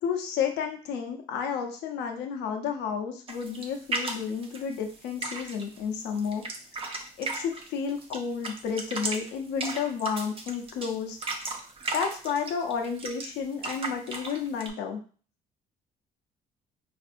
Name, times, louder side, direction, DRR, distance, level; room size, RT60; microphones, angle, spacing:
voice 1, 0.0-6.5 7.2-11.2 11.9-15.0, left 6 dB, 85° left, 4 dB, 0.7 m, -31 dB
sound 1, 3.3-5.8 6.2-8.2 8.4-13.3 13.5-14.7, right 2 dB, 35° right, 0.6 m, -35 dB
4.2 x 2.6 x 2.5 m, 0.40 s
cardioid pair, 110°, 17 cm